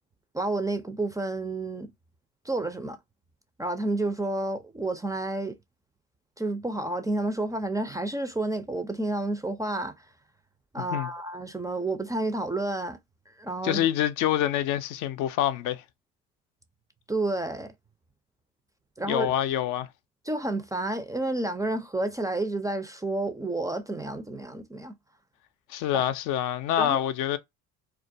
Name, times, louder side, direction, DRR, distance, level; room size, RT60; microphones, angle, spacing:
voice 1, 0.3-1.9 2.4-3.0 3.6-5.6 6.4-9.9 10.7-13.0 13.4-13.9 17.1-17.7 19.0-19.3 20.3-24.9 25.9-26.1 26.8-27.0, right 2 dB, 10° right, 0.3 m, -30 dB
voice 2, 10.8-11.1 13.6-15.8 19.0-19.9 25.7-27.4, left 11 dB, 65° left, 0.4 m, -26 dB
2.3 x 2.2 x 2.6 m
hypercardioid pair, 70°, 34 cm